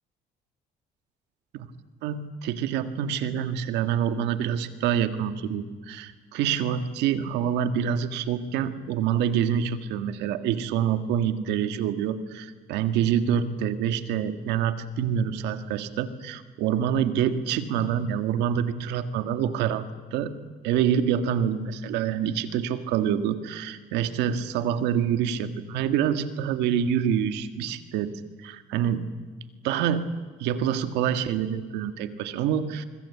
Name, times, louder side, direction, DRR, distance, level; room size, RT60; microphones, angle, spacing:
voice 1, 2.0-19.8 20.1-20.3 20.6-29.1 29.6-30.1 30.4-32.8, right 8 dB, 90° right, 9 dB, 1.7 m, -26 dB
24.5 x 24.0 x 8.5 m, 1.4 s
cardioid pair, 110°, 17 cm